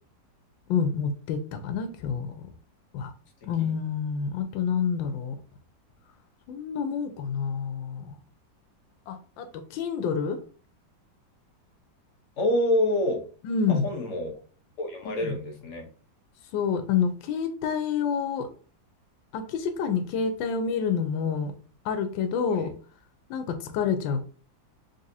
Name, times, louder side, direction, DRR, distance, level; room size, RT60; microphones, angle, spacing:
voice 1, 0.7-2.5 2.9-3.1 3.4-5.3 6.5-8.1 9.1-10.4 13.4-13.8 15.0-15.3 16.5-18.5 19.3-21.5 21.8-22.7 23.3-24.2, left 6 dB, 90° left, 1.4 m, -28 dB
voice 2, 12.4-13.2 13.7-14.4 14.8-15.9 22.5-22.7, left 1 dB, 50° left, 1.1 m, -27 dB
3.9 x 3.4 x 2.7 m
omnidirectional pair, 2.0 m